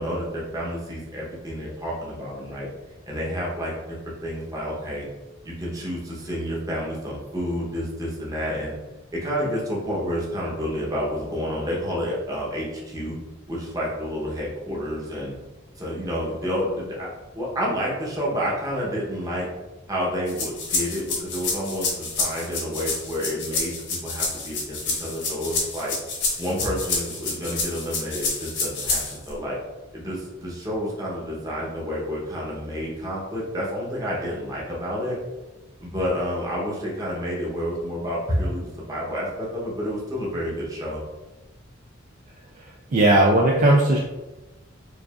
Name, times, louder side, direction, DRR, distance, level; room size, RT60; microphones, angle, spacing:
voice 1, 0.0-2.7 3.1-4.0 4.2-5.1 5.4-8.7 9.2-13.1 13.5-15.3 15.8-17.1 17.3-19.5 19.9-25.9 26.4-29.6 29.9-35.2 35.8-41.0, equal, 20° right, -5 dB, 0.9 m, -29 dB
sound 1, 20.3-29.3, left 3 dB, 60° left, 1.0 m, -28 dB
voice 2, 42.9-44.0, right 1 dB, 40° right, -2 dB, 0.4 m, -17 dB
4.7 x 2.6 x 2.4 m, 1.1 s
head